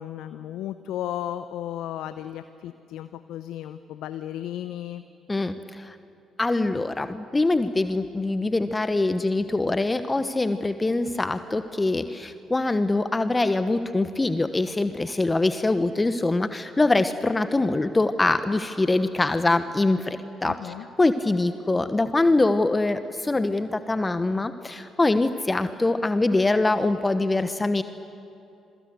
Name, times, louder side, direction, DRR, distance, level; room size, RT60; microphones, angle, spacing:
voice 1, 0.0-5.0 20.4-20.9, left 11 dB, 65° left, 12 dB, 0.7 m, -34 dB
voice 2, 5.3-5.9 6.4-27.8, left 2 dB, 20° left, 11 dB, 1.1 m, -24 dB
27.5 x 23.0 x 8.0 m, 2.6 s
hypercardioid pair, 45°, 0 cm